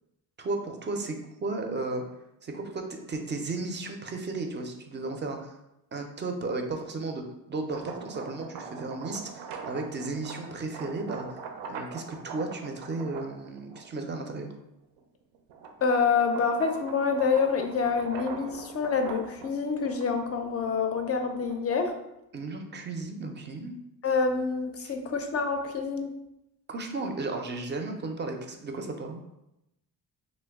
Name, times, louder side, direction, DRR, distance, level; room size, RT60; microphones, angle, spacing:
voice 1, 0.4-2.0 2.4-5.6 5.9-11.4 11.7-14.5 22.3-23.7 24.8-24.9 26.7-29.2, right 3 dB, 30° right, 4 dB, 0.4 m, -34 dB
sound 1, 7.5-14.1 14.7-21.9, right 5 dB, 85° right, 0.5 m, -43 dB
voice 2, 15.8-21.9 24.0-26.1, left 5 dB, 35° left, 5 dB, 0.4 m, -27 dB
2.9 x 2.1 x 3.4 m, 0.88 s
cardioid pair, 85°, 41 cm